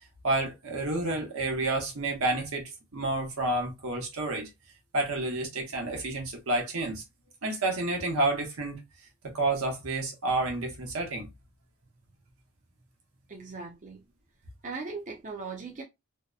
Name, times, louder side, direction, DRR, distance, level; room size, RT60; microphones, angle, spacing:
voice 1, 0.2-4.5 4.9-7.0 7.4-8.8 9.2-11.3, right 2 dB, 75° right, 0.9 m, -30 dB
voice 2, 13.3-14.0 14.6-15.8, right 4 dB, 35° right, 0.5 m, -39 dB
2.7 x 2.0 x 2.3 m
head